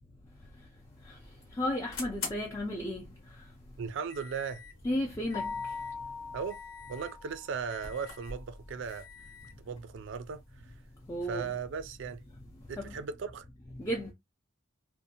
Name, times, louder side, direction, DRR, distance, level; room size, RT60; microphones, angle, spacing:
sound 1, 0.7-13.2, left 4 dB, 85° left, 0.9 m, -48 dB
voice 1, 1.5-3.1 4.8-5.7 11.1-11.6 12.8-12.9 13.8-14.1, equal, 15° left, 0.3 m, -33 dB
voice 2, 3.8-4.6 6.3-6.6 6.9-9.1 9.6-10.7 11.3-12.2 12.7-13.5, right 6 dB, 65° right, 0.4 m, -37 dB
Keyboard (musical), 5.3-7.8, left 5 dB, 40° left, 0.7 m, -40 dB
2.6 x 2.1 x 2.7 m
head